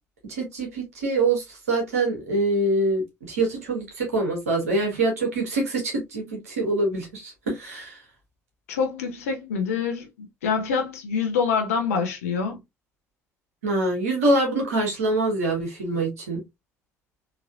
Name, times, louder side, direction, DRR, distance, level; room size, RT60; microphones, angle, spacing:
voice 1, 0.3-3.0 3.3-8.0 13.6-16.4, right 2 dB, 80° right, 1.4 m, -25 dB
voice 2, 8.7-12.6, left 5 dB, 80° left, 0.9 m, -26 dB
4.1 x 2.9 x 2.5 m
figure-of-eight pair, 50°, 8 cm